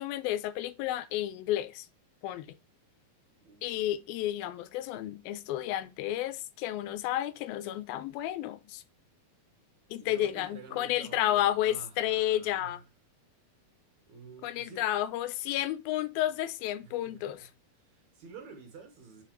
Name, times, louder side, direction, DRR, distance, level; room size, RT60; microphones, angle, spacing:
voice 1, 0.0-1.9 2.2-2.5 3.6-8.8 9.9-12.8 14.4-17.5, left 13 dB, 85° left, 2.4 m, -31 dB
voice 2, 10.0-12.8 14.1-14.9 16.8-17.5 17.8-19.2, right 5 dB, 65° right, 2.1 m, -50 dB
6.3 x 5.1 x 3.0 m
omnidirectional pair, 4.2 m